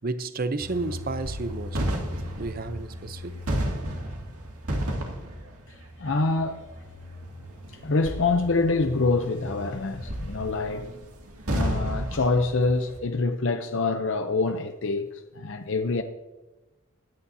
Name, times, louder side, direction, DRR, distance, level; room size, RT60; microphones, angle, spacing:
voice 1, 0.0-1.8 2.4-3.4, right 3 dB, 40° right, 0.6 m, -31 dB
sound 1, 0.6-13.0, equal, 85° right, 2.2 m, -33 dB
voice 2, 6.0-6.6 7.7-10.9 11.5-16.0, left 3 dB, 55° left, 0.6 m, -26 dB
21.5 x 9.9 x 2.7 m
head